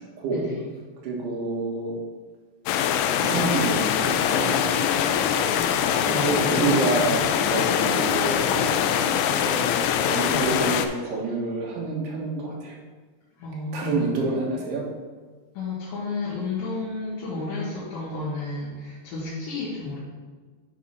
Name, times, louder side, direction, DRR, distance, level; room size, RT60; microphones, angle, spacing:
voice 1, 0.3-0.7 5.5-5.7 6.1-7.0 10.3-10.4 13.4-14.1 15.6-20.0, left 3 dB, 70° left, -9 dB, 3.6 m, -32 dB
voice 2, 1.0-2.0 3.2-5.5 6.0-12.7 13.7-14.8, right 3 dB, 65° right, -3 dB, 3.0 m, -28 dB
sound 1, 2.7-10.9, left 9 dB, 85° left, 2.6 m, -23 dB
9.5 x 3.6 x 5.5 m, 1.4 s
omnidirectional pair, 5.7 m